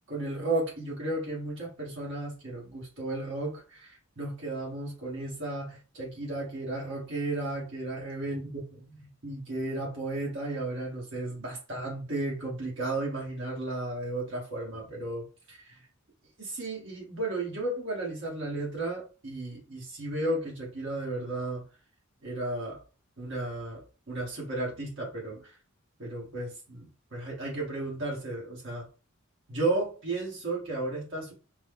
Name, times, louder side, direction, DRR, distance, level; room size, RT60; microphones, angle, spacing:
voice 1, 0.1-15.8 16.4-21.6 22.2-22.8 23.2-25.6 26.0-28.9 29.5-31.3, right 2 dB, 55° right, -3 dB, 1.2 m, -34 dB
5.1 x 2.1 x 3.5 m, 0.35 s
head